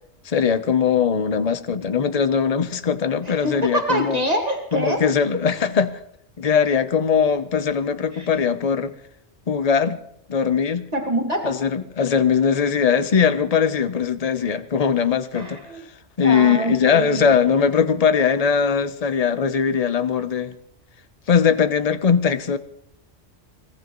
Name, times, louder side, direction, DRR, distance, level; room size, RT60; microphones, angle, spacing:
voice 1, 0.2-4.2 4.7-6.0 6.4-8.9 9.5-10.0 10.3-10.9 11.4-15.6 16.2-20.5 21.3-22.6, left 6 dB, 35° left, 11 dB, 0.8 m, -20 dB
voice 2, 3.2-5.0 8.1-8.4 10.9-11.6 15.3-15.8 16.2-17.3, right 1 dB, 35° right, 2 dB, 2.2 m, -25 dB
25.5 x 18.5 x 3.1 m, 0.74 s
omnidirectional pair, 1.2 m